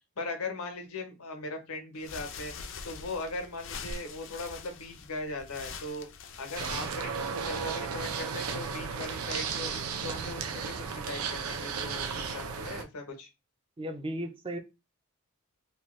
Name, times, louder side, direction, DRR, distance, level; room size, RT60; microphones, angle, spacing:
voice 1, 0.2-2.5 2.8-6.1 6.4-9.7 10.0-13.3, left 2 dB, 90° left, 4 dB, 0.9 m, -39 dB
sound 1, 1.9-7.6, left 5 dB, 60° left, 0.4 m, -44 dB
sound 2, 6.6-12.8, right 5 dB, 90° right, 0.5 m, -34 dB
voice 2, 13.8-14.6, equal, 25° right, 7 dB, 0.4 m, -35 dB
2.9 x 2.3 x 3.0 m, 0.25 s
head